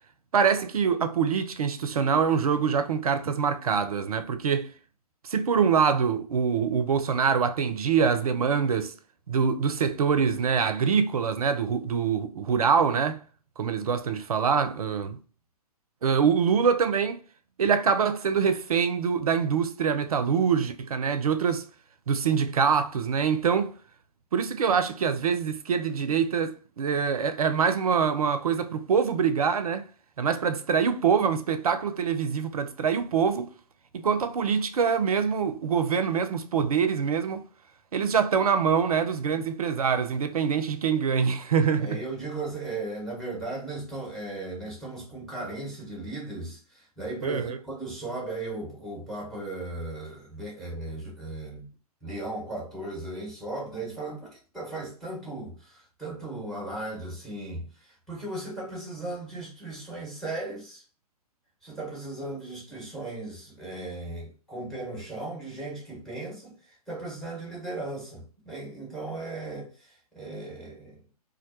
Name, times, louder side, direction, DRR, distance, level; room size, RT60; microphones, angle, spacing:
voice 1, 0.3-4.7 5.2-8.9 9.3-13.2 13.6-15.2 16.0-17.2 17.6-21.6 22.1-23.7 24.3-29.9 30.2-33.5 33.9-37.4 37.9-42.0 47.2-47.6, right 6 dB, 65° right, 0.4 m, -24 dB
voice 2, 41.8-51.7 52.0-60.8 61.6-71.0, right 2 dB, ahead, 1.0 m, -37 dB
2.4 x 2.2 x 2.6 m
figure-of-eight pair, 115°, 20 cm